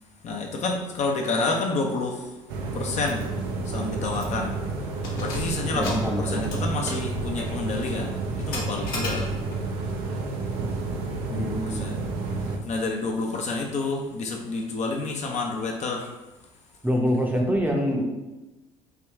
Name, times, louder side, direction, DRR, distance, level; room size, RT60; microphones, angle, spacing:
voice 1, 0.2-2.4 2.7-3.3 3.6-9.4 11.3-12.1 12.3-16.1, left 3 dB, 45° left, 1 dB, 0.6 m, -29 dB
sound 1, 2.5-12.6, right 3 dB, 60° right, 0.5 m, -30 dB
Keys jangling, 3.0-3.2 3.6-3.7 4.1-4.5 4.9-9.7, left 1 dB, 60° left, 0.9 m, -36 dB
voice 2, 5.7-6.8 11.3-11.9 16.8-18.0, equal, 10° right, 0 dB, 0.7 m, -26 dB
3.6 x 2.2 x 3.4 m, 1.1 s
hypercardioid pair, 60°, 17 cm